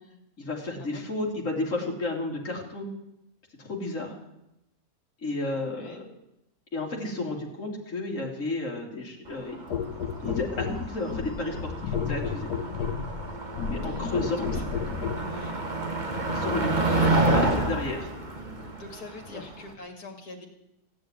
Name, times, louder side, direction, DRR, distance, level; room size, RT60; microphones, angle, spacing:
voice 1, 0.4-2.9 3.6-4.2 5.2-6.0 6.7-9.6 10.2-12.5 13.7-14.5 16.3-18.1 19.3-19.4, left 2 dB, 55° left, -2 dB, 3.3 m, -32 dB
voice 2, 5.5-6.0 13.8-14.6 15.2-15.6 16.6-17.2 18.8-20.5, left 3 dB, 75° left, 3 dB, 3.0 m, -44 dB
Motor vehicle (road), 9.3-19.7, right 2 dB, 30° right, 1.7 m, -29 dB
sound 1, 9.7-15.3 16.1-16.3, left 6 dB, 90° left, 1.6 m, -32 dB
16.0 x 8.6 x 9.4 m, 0.86 s
omnidirectional pair, 1.7 m